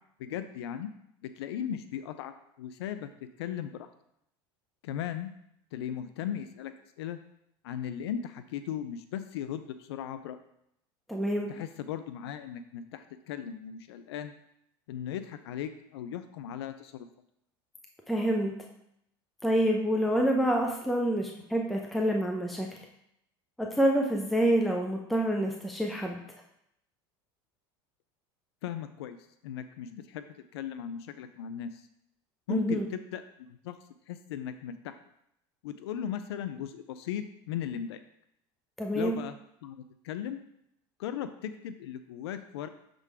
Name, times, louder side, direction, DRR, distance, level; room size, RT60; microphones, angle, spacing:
voice 1, 0.2-0.9 1.2-3.1 3.4-3.9 4.8-5.3 5.7-7.2 7.6-10.4 11.5-14.3 14.9-17.1 28.6-29.2 29.4-30.3 30.5-31.9 32.5-33.2 33.6-33.8 34.1-35.0 35.6-38.0 38.9-40.4 41.0-42.7, left 9 dB, 85° left, 10 dB, 0.4 m, -37 dB
voice 2, 11.1-11.5 18.1-18.5 19.4-22.7 23.6-26.2 32.5-32.8 38.8-39.2, right 1 dB, ahead, 0 dB, 0.7 m, -27 dB
6.4 x 3.8 x 4.7 m, 0.77 s
hypercardioid pair, 95°, 13 cm